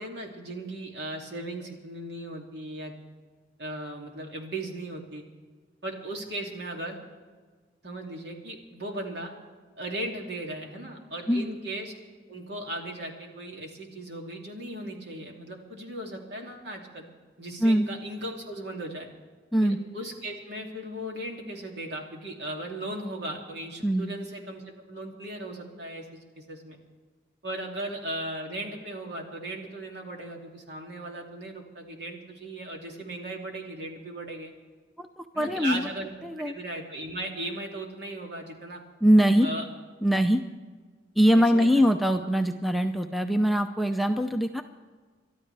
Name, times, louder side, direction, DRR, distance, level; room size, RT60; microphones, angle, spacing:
voice 1, 0.0-2.9 3.6-5.2 5.8-7.0 7.8-9.3 9.8-11.9 12.3-17.1 17.4-19.1 19.6-26.0 26.4-26.8 27.4-34.5 35.3-38.8 39.4-39.6 41.3-41.9, right 1 dB, 65° right, 1 dB, 2.6 m, -37 dB
voice 2, 23.8-24.1 35.0-35.9 36.2-36.5 39.0-39.5 40.0-40.4 41.2-44.6, equal, ahead, 6 dB, 0.5 m, -22 dB
29.0 x 13.0 x 3.4 m, 1.4 s
head